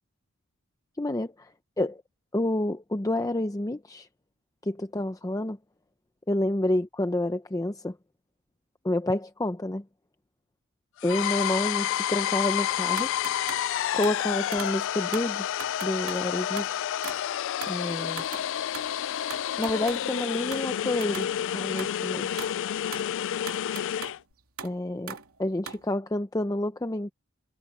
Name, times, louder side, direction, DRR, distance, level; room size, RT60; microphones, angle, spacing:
voice 1, 1.0-1.3 1.8-2.0 2.3-4.1 4.6-5.6 6.3-8.0 8.8-9.8 11.0-13.1 13.9-15.5 15.8-16.8 17.7-18.2 19.6-21.3 21.5-22.3 24.6-25.1 25.4-27.1, left 1 dB, 15° left, 0.7 m, -29 dB
sound 1, 11.0-24.2, left 10 dB, 60° left, 0.4 m, -29 dB
sound 2, 13.0-13.7 14.0-14.2 14.5-14.9 15.1-16.3 16.6-17.3 17.6-17.8 18.2-18.5 18.7-20.1 20.5-20.7 21.0-21.3 21.7-22.0 22.4-22.6 22.8-24.2 24.6-25.9, right 6 dB, 80° right, 2.8 m, -40 dB
head